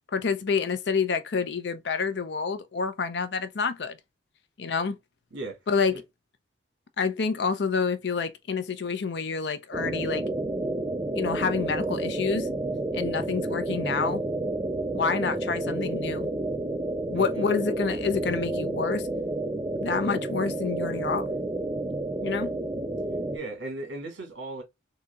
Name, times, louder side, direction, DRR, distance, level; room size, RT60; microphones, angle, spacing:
voice 1, 0.1-4.0 4.6-5.0 5.7-6.0 7.0-10.2 11.1-12.5 12.9-14.2 14.9-16.3 17.1-19.1 19.8-21.3 22.2-22.5, left 5 dB, 60° left, 0.5 m, -28 dB
voice 2, 5.3-6.0 17.1-17.5 23.3-24.6, right 2 dB, 75° right, 1.7 m, -37 dB
sound 1, 9.7-23.4, right 2 dB, 20° right, 0.3 m, -30 dB
3.8 x 2.8 x 2.2 m
head